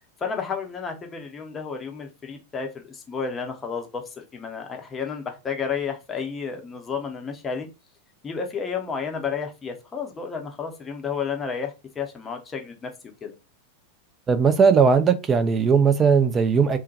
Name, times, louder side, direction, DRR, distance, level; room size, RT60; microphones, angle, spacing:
voice 1, 0.2-7.7 8.2-12.9 13.2-13.3, left 6 dB, 20° left, 0.7 m, -31 dB
voice 2, 14.3-16.8, right 6 dB, 20° right, 0.4 m, -18 dB
3.5 x 2.2 x 2.8 m
figure-of-eight pair, 90°, 0 cm